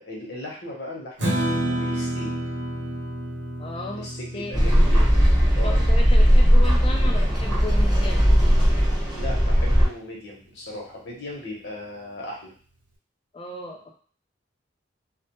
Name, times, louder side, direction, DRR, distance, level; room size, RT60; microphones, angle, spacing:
voice 1, 0.0-2.3 3.9-5.2 5.5-5.8 9.1-12.5, left 1 dB, 65° left, -3 dB, 0.8 m, -37 dB
Strum, 1.2-7.5, right 1 dB, 80° right, 0.7 m, -30 dB
voice 2, 3.6-4.6 5.6-8.3 13.3-13.9, left 2 dB, 30° left, 1 dB, 0.4 m, -35 dB
sound 1, 4.5-9.9, equal, ahead, 0.9 m, -18 dB
2.1 x 2.1 x 2.9 m, 0.43 s
head